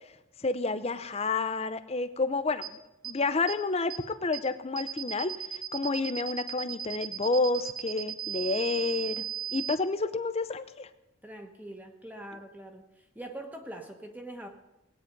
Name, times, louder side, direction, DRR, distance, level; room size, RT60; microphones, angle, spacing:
voice 1, 0.4-9.2 9.5-10.9, left 3 dB, 30° left, 11 dB, 0.6 m, -30 dB
sound 1, 2.6-2.7 3.0-3.1 3.5-3.6 3.9-4.0 4.3-4.4 4.8-9.8, right 10 dB, 25° right, 0.7 m, -36 dB
voice 2, 11.2-12.8 13.1-14.5, right 1 dB, 5° right, 4 dB, 1.1 m, -43 dB
18.5 x 9.1 x 5.2 m, 0.95 s
head